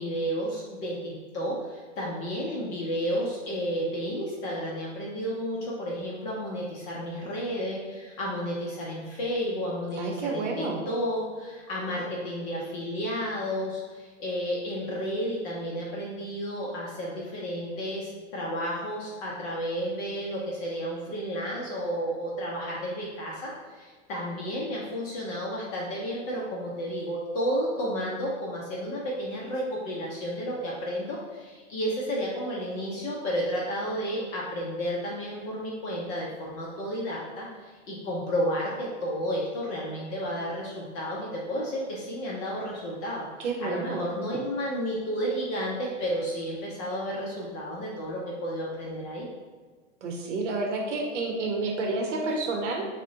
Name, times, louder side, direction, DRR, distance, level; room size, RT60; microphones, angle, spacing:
voice 1, 0.0-49.3, equal, 30° left, -4 dB, 0.5 m, -32 dB
voice 2, 10.0-10.8 43.4-44.1 50.0-52.9, right 3 dB, 85° right, 1 dB, 0.7 m, -29 dB
3.6 x 2.1 x 3.7 m, 1.5 s
hypercardioid pair, 140°, 36 cm